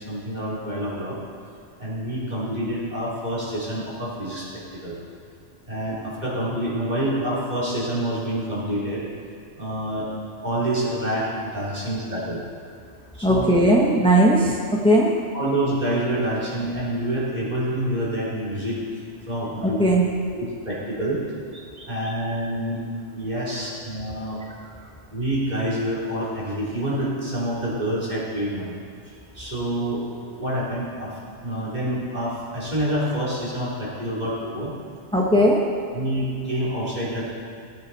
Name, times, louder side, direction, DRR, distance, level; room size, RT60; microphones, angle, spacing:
voice 1, 0.1-1.2 1.8-5.0 5.7-9.0 9.6-10.1 10.4-12.4 13.2-13.5 15.3-18.8 19.3-19.8 20.3-21.2 21.9-22.8 23.1-24.4 25.1-28.8 29.4-30.0 30.4-31.1 31.4-34.7 35.9-37.2, right 1 dB, 35° right, -7 dB, 3.5 m, -27 dB
voice 2, 13.2-14.6 14.8-15.1 19.6-20.0 35.1-35.6, right 1 dB, 5° left, -3 dB, 1.0 m, -17 dB
17.0 x 10.5 x 4.1 m, 2.2 s
omnidirectional pair, 1.2 m